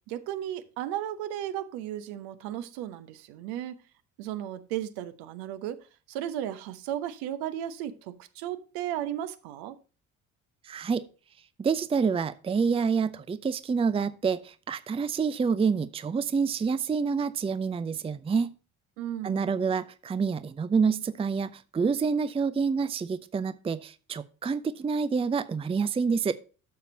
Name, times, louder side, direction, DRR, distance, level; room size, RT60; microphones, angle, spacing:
voice 1, 0.1-3.7 4.2-5.8 6.1-9.8 19.0-19.4, right 11 dB, 60° right, 1.0 m, -35 dB
voice 2, 10.7-11.0 11.6-18.5 19.2-26.3, right 5 dB, 15° right, 0.6 m, -27 dB
12.0 x 6.8 x 2.8 m
figure-of-eight pair, 55°, 43 cm